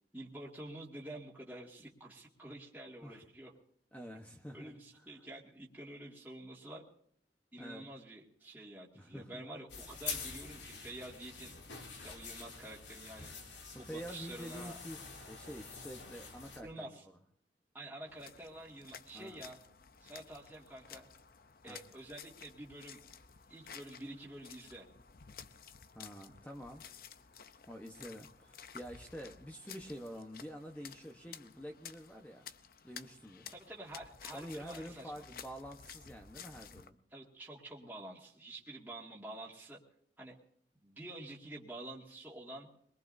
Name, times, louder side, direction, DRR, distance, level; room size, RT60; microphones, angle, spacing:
voice 1, 0.1-3.5 4.5-6.8 7.5-11.5 11.9-13.3 13.8-14.8 16.6-17.0 17.7-19.6 20.0-21.1 21.6-23.0 23.5-24.9 33.5-35.2 37.1-39.8 40.2-40.4 40.8-42.7, right 1 dB, 10° right, -5 dB, 2.1 m, -48 dB
voice 2, 3.9-5.2 7.6-7.9 8.9-9.4 13.7-15.0 15.2-16.9 19.1-19.4 21.7-21.8 25.9-26.8 27.7-32.5 32.8-33.5 34.3-37.0, equal, 10° left, 2 dB, 1.1 m, -47 dB
sound 1, 9.7-16.6, left 5 dB, 85° left, 2.7 m, -46 dB
sound 2, 18.1-36.9, left 7 dB, 55° left, 0.7 m, -54 dB
23.0 x 22.0 x 2.7 m, 0.69 s
head